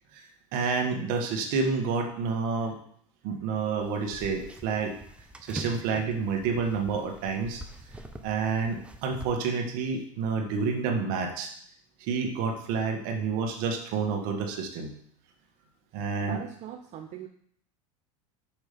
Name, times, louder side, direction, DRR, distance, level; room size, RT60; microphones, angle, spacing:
voice 1, 0.5-2.8 3.2-4.9 5.4-7.6 8.2-11.5 12.0-14.9 15.9-16.4, right 5 dB, 65° right, 3 dB, 1.6 m, -29 dB
sound 1, 3.8-9.3, right 1 dB, 5° right, 0.8 m, -44 dB
voice 2, 16.3-17.3, right 9 dB, 45° right, 3 dB, 0.7 m, -40 dB
6.0 x 5.6 x 5.2 m, 0.64 s
hypercardioid pair, 100°, 17 cm